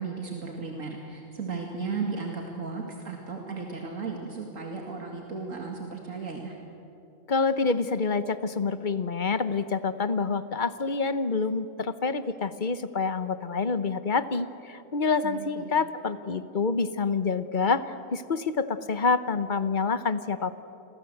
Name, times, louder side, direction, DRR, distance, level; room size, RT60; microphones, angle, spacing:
voice 1, 0.0-6.6 15.2-15.7, right 4 dB, 85° right, 1 dB, 2.7 m, -35 dB
voice 2, 7.3-20.6, left 4 dB, 40° left, 13 dB, 1.1 m, -27 dB
29.5 x 23.5 x 7.9 m, 2.9 s
omnidirectional pair, 1.3 m